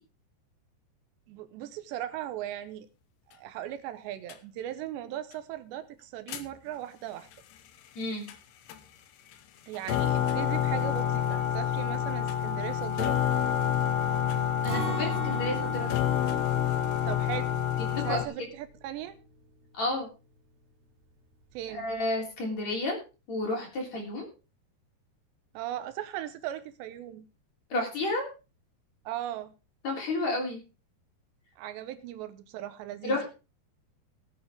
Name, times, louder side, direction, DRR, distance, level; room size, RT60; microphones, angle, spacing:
voice 1, 1.3-2.9 3.3-7.3 9.7-13.2 17.0-17.5 18.0-19.2 21.5-21.9 25.5-27.3 29.1-29.5 31.6-33.3, right 12 dB, 80° right, 10 dB, 3.1 m, -38 dB
sound 1, 4.3-4.4 6.3-6.5 8.3-8.4 8.7-8.8 9.3-9.4 9.7-18.3, left 10 dB, 80° left, 3.0 m, -28 dB
voice 2, 8.0-8.3 14.6-15.9 17.8-18.3 19.7-20.1 21.7-23.0 23.3-24.3 27.7-28.3 29.8-30.6 33.0-33.3, left 2 dB, 40° left, 0 dB, 4.0 m, -31 dB
Acoustic guitar, 14.6-20.5 20.9-21.0 21.5-22.0, right 3 dB, 60° right, 4.2 m, -41 dB
18.0 x 8.7 x 3.5 m, 0.31 s
omnidirectional pair, 5.0 m